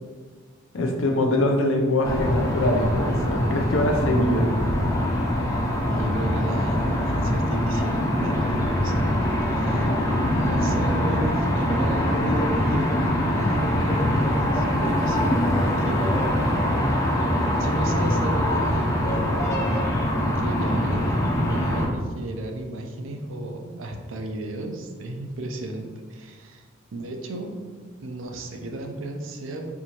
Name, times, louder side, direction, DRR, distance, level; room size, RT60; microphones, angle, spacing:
voice 1, 0.7-4.5, left 1 dB, 80° left, 2 dB, 0.6 m, -23 dB
sound 1, 2.0-21.9, equal, 15° left, 0.5 m, -23 dB
voice 2, 5.9-9.0 9.4-9.9 10.2-16.3 17.6-19.3 20.4-26.6 26.9-27.6 28.0-29.7, right 1 dB, 80° right, 3 dB, 0.5 m, -33 dB
4.6 x 2.6 x 2.9 m, 1.5 s
head